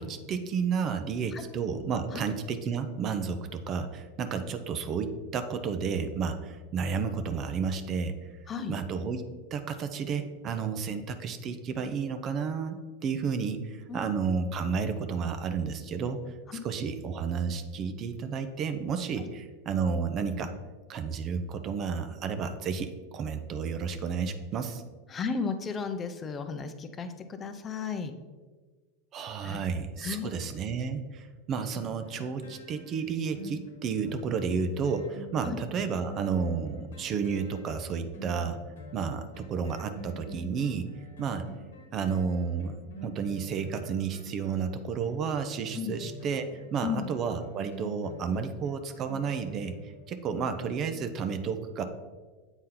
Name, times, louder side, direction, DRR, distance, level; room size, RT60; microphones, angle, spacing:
voice 1, 0.0-8.1 8.7-9.2 9.5-16.2 16.5-20.5 20.9-24.8 29.1-38.6 38.9-40.9 41.2-41.5 41.9-42.7 43.0-46.5 46.7-49.7 50.1-51.8, right 6 dB, 40° right, 9 dB, 0.6 m, -31 dB
voice 2, 25.1-28.1 29.4-29.6 30.0-30.3 35.4-35.6 45.7-46.0 46.8-47.1, left 6 dB, 25° left, 8 dB, 0.6 m, -34 dB
sound 1, 31.5-50.2 50.7-50.8, equal, 80° left, 1.2 m, -47 dB
7.9 x 4.2 x 3.8 m, 1.3 s
hypercardioid pair, 95°, 0 cm